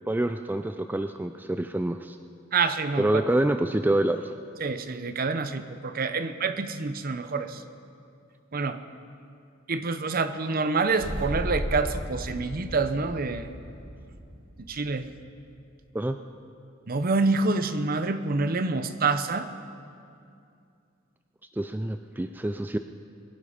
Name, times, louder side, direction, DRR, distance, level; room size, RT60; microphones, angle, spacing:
voice 1, 0.1-2.2 3.0-4.3 15.9-16.2 21.6-22.8, right 1 dB, 10° right, 8 dB, 0.3 m, -26 dB
voice 2, 2.5-3.2 4.6-7.6 8.5-8.8 9.7-13.5 14.6-15.1 16.9-19.5, right 4 dB, 50° right, 11 dB, 0.7 m, -27 dB
sound 1, 10.9-15.2, equal, 70° right, 2.9 m, -35 dB
22.5 x 11.5 x 5.1 m, 2.5 s
head